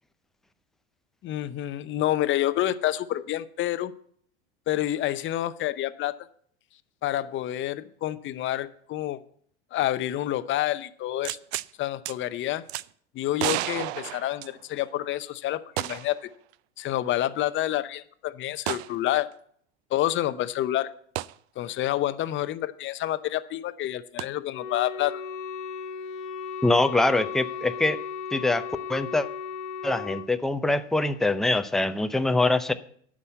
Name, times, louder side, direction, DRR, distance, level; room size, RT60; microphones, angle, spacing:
voice 1, 1.2-3.9 4.7-6.2 7.0-9.2 9.7-11.4 11.8-12.6 13.1-16.3 16.8-19.3 19.9-20.9 21.6-25.2, left 13 dB, 35° left, 12 dB, 0.7 m, -28 dB
sound 1, 11.2-11.7 12.1-12.2 12.7-12.9 13.4-14.9 15.8-16.2 16.5-16.6 18.7-18.9 21.2-21.3 24.2-24.3, right 16 dB, 75° right, 0.5 m, -31 dB
Wind instrument woodwind instrument, 24.5-30.3, left 6 dB, 70° left, 1.3 m, -35 dB
voice 2, 26.6-28.0 28.3-28.6 28.9-29.3 29.8-32.7, left 2 dB, ahead, 9 dB, 0.6 m, -24 dB
9.7 x 6.2 x 8.2 m, 0.62 s
hypercardioid pair, 95°, 34 cm